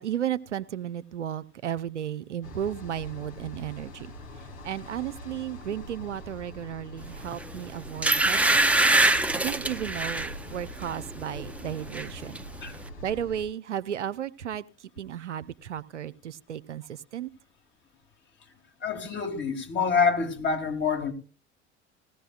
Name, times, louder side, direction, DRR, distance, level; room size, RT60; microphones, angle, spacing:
voice 1, 0.0-4.1 4.6-8.6 9.4-12.4 13.0-14.7 15.0-17.3, right 10 dB, 85° right, 0.5 m, -34 dB
sound 1, 2.4-13.4, equal, 70° left, 2.2 m, -43 dB
sound 2, 7.3-7.5 8.0-10.3 10.8-11.0 11.3-12.1 12.3-12.4, right 2 dB, 5° right, 0.6 m, -23 dB
voice 2, 18.8-21.1, left 5 dB, 35° left, 2.1 m, -26 dB
19.0 x 15.5 x 2.3 m
figure-of-eight pair, 70°, 34 cm